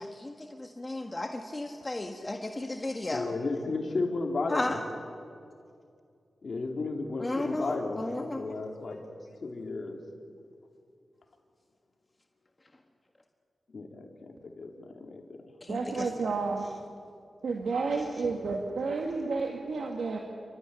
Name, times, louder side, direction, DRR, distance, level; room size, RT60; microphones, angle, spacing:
voice 1, 0.0-3.3 4.5-4.8 7.2-8.4 15.7-16.1, left 2 dB, 25° left, 4 dB, 1.6 m, -34 dB
voice 2, 3.1-4.8 6.4-9.0 9.4-10.0 13.7-14.1 14.4-15.2, left 3 dB, 55° left, 2 dB, 3.5 m, -33 dB
voice 3, 15.7-16.7 17.4-20.2, right 4 dB, 80° right, 1 dB, 2.1 m, -31 dB
29.0 x 13.5 x 9.9 m, 2.3 s
cardioid pair, 75°, 0 cm